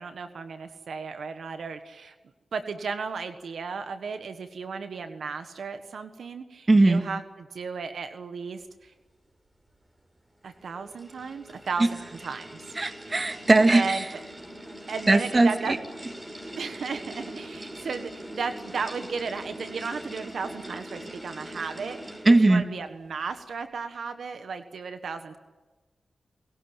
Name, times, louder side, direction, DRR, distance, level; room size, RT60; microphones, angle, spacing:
voice 1, 0.0-2.1 2.5-7.2 7.5-8.9 10.4-12.7 13.1-13.3 13.7-14.0 14.9-15.7 16.6-25.4, right 5 dB, 85° right, 8 dB, 1.4 m, -34 dB
voice 2, 6.7-7.0 12.8-14.1 15.1-15.5 22.3-22.6, right 2 dB, 35° right, 8 dB, 2.0 m, -19 dB
sound 1, 10.4-22.6, right 1 dB, 20° right, 6.3 m, -42 dB
29.0 x 16.5 x 9.0 m, 1.2 s
cardioid pair, 50°, 0 cm